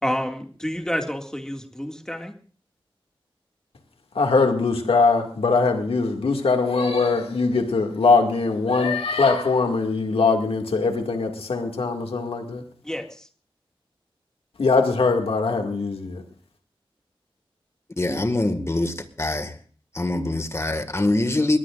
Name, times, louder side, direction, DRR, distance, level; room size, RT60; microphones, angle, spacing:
voice 1, 0.0-2.3 12.8-13.3, equal, 5° left, 3 dB, 2.2 m, -29 dB
voice 2, 4.1-12.6 14.6-16.2, left 4 dB, 90° left, 3 dB, 2.2 m, -21 dB
voice 3, 18.0-19.6 19.9-21.6, left 2 dB, 30° left, 8 dB, 1.9 m, -24 dB
21.5 x 19.5 x 2.5 m, 0.43 s
wide cardioid pair, 65°, 10 cm